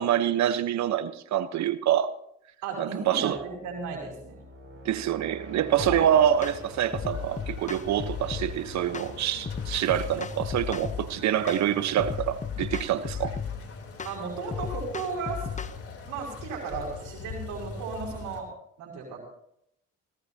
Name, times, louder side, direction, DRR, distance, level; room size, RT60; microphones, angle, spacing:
voice 1, 0.0-2.1 2.8-3.4 4.8-13.3, right 10 dB, 60° right, 1.1 m, -26 dB
voice 2, 2.6-4.4 5.9-6.0 14.0-15.5 16.1-18.5 18.8-19.2, right 4 dB, 80° right, 5.3 m, -35 dB
sound 1, 3.0-11.8, equal, 40° right, 6.9 m, -49 dB
sound 2, 5.8-6.0 6.4-6.6 6.9-8.5 8.9-9.1 9.5-11.1 11.5-11.7 12.0-13.6 14.0-14.2 14.5-15.8, left 7 dB, 25° left, 0.7 m, -34 dB
sound 3, 5.9-18.4, left 4 dB, 45° left, 3.5 m, -43 dB
19.5 x 18.0 x 2.9 m
supercardioid pair, 75°, 31 cm